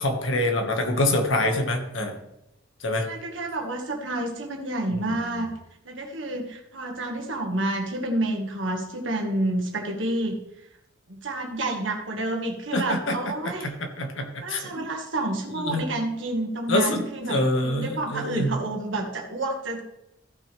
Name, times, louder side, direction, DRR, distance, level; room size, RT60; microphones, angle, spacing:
voice 1, 0.0-2.2 2.8-3.1 4.9-5.2 12.7-13.2 13.6-14.8 15.6-15.8 16.7-17.0 17.3-18.5, left 1 dB, 80° left, 3 dB, 1.7 m, -25 dB
voice 2, 3.0-5.5 5.9-10.4 11.1-13.7 14.4-19.8, right 1 dB, 70° right, 1 dB, 1.8 m, -29 dB
15.5 x 6.1 x 3.4 m, 0.87 s
head